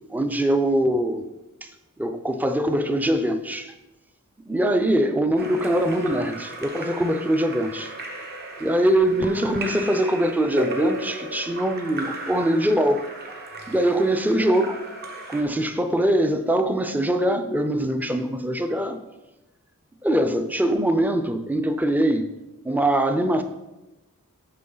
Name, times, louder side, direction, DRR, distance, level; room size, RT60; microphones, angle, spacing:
voice 1, 0.1-1.2 1.6-1.7 2.0-3.7 4.5-7.9 8.6-13.0 13.7-14.8 15.3-19.0 20.0-22.3 22.6-23.4, right 1 dB, 10° right, 9 dB, 0.4 m, -22 dB
Splash splatter / Drip / Trickle dribble, 5.4-15.4, right 2 dB, 45° right, 1.0 m, -35 dB
7.5 x 6.1 x 3.9 m, 1.0 s
head